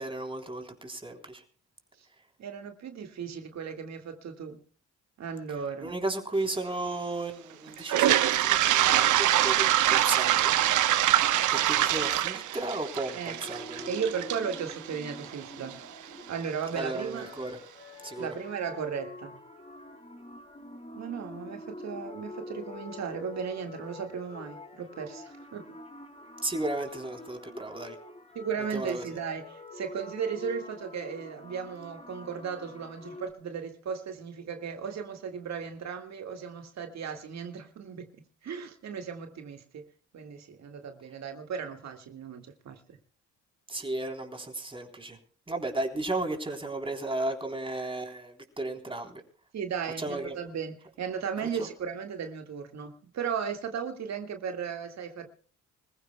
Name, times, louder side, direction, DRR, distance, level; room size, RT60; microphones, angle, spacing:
voice 1, 0.0-1.4 5.8-10.6 11.5-13.9 16.8-17.6 18.0-18.3 26.4-28.0 28.7-29.0 43.7-45.2 45.5-49.2 50.0-50.4 51.6-51.7, right 2 dB, 15° right, 3.7 m, -34 dB
voice 2, 2.4-4.6 5.2-5.9 13.1-13.4 13.9-15.8 16.3-17.3 18.2-19.4 20.9-25.6 28.4-38.1 38.4-39.9 40.1-42.8 49.5-55.2, right 6 dB, 60° right, 1.9 m, -36 dB
Toilet flush, 7.8-15.7, right 12 dB, 80° right, 1.1 m, -24 dB
sound 1, 13.4-33.3, left 2 dB, 20° left, 3.3 m, -46 dB
26.0 x 15.0 x 2.3 m
cardioid pair, 90°, 30 cm